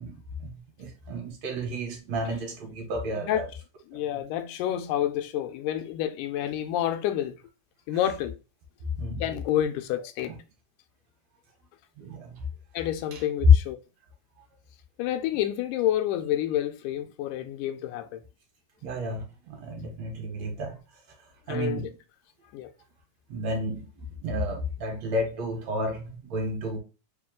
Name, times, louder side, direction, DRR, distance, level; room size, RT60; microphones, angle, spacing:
voice 1, 0.0-3.4 9.0-9.2 10.3-10.4 12.0-12.4 13.1-13.2 18.8-20.8 21.5-21.9 23.3-23.9 24.2-26.8, right 1 dB, 65° right, 2.0 m, -32 dB
voice 2, 3.9-7.3 7.9-8.4 9.2-10.3 12.7-13.8 15.0-18.2 21.5-21.9 22.5-22.7, left 11 dB, 90° left, 2.1 m, -29 dB
4.9 x 2.3 x 3.7 m
omnidirectional pair, 3.6 m